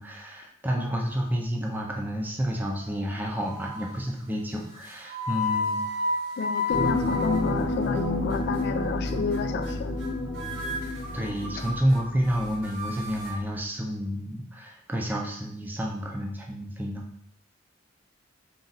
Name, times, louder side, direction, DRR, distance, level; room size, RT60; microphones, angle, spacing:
voice 1, 0.0-5.8 11.1-17.0, equal, 10° right, 0 dB, 0.5 m, -30 dB
sound 1, 2.5-3.1 3.4-3.9 4.7-8.0 8.3-8.6 9.1-9.4 9.6-10.1 10.3-13.4, left 3 dB, 75° right, 1.2 m, -32 dB
voice 2, 6.4-9.9, left 5 dB, 55° left, 9 dB, 0.3 m, -30 dB
sound 2, 6.7-12.8 13.1-13.2, left 2 dB, 70° left, 0.9 m, -30 dB
4.0 x 2.5 x 3.9 m, 0.68 s
head